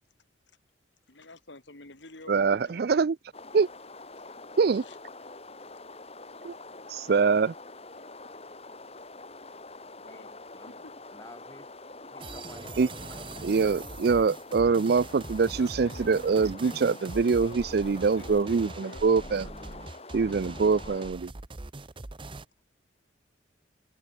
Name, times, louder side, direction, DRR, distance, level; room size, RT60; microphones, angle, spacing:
voice 1, 1.1-2.9 4.8-5.0 10.0-10.3 10.8-10.9 15.5-17.7 18.1-19.8, left 2 dB, 75° left, 3.7 m, -48 dB
voice 2, 2.3-3.2 3.5-3.7 4.6-4.8 6.4-6.5 6.9-7.5 12.8-12.9 13.4-19.5 20.1-21.3, right 5 dB, 55° right, 0.4 m, -24 dB
sound 1, 3.3-21.1, left 3 dB, 35° left, 5.5 m, -46 dB
voice 3, 9.9-10.8 11.1-11.7 12.1-13.9, left 1 dB, 15° left, 4.5 m, -51 dB
sound 2, 12.2-22.4, right 2 dB, 30° right, 0.8 m, -42 dB
head